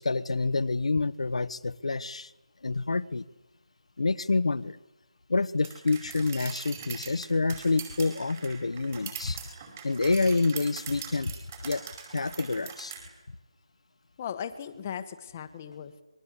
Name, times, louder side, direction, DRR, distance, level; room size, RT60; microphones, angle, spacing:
voice 1, 0.0-2.3 2.6-3.2 4.0-4.8 5.3-9.4 9.8-11.3 11.6-11.8 12.1-12.9, left 3 dB, 80° left, 14 dB, 1.3 m, -27 dB
sound 1, 5.6-13.0, right 7 dB, 20° right, 5.2 m, -42 dB
voice 2, 14.2-16.0, left 8 dB, 20° left, 9 dB, 1.4 m, -37 dB
27.0 x 22.0 x 8.4 m, 1.0 s
hypercardioid pair, 175°, 3 cm